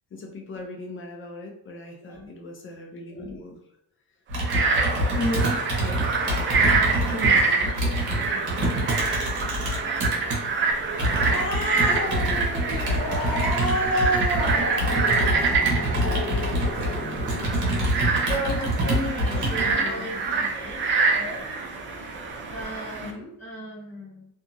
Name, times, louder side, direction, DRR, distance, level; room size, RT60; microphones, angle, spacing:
voice 1, 0.1-3.6 5.1-6.7 7.1-8.9 10.1-10.2 17.6-20.5 23.0-23.3, left 2 dB, 35° left, 1 dB, 0.4 m, -36 dB
Computer keyboard, 4.3-10.4 11.0-19.8, right 1 dB, 55° right, 1.0 m, -26 dB
Frog, 4.4-23.1, right 4 dB, 35° right, 0.4 m, -26 dB
voice 2, 6.5-6.9 11.2-11.5 18.3-20.2 20.5-20.8 21.1-21.4 22.5-23.1 23.4-24.3, right 2 dB, 5° left, -9 dB, 1.5 m, -36 dB
Growling, 10.9-17.7, left 1 dB, 70° left, 1.0 m, -30 dB
2.8 x 2.4 x 2.6 m, 0.78 s
cardioid pair, 140°, 36 cm